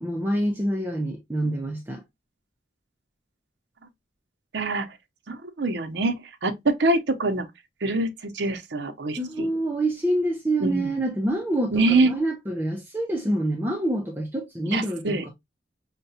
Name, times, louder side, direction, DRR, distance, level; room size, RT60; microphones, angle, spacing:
voice 1, 0.0-2.0 9.2-15.3, right 1 dB, 10° right, 0.6 m, -26 dB
voice 2, 4.5-4.9 5.3-7.5 7.8-9.5 10.6-10.9 11.7-12.1 14.7-15.2, right 2 dB, 75° right, 0.7 m, -24 dB
5.6 x 2.2 x 2.6 m
head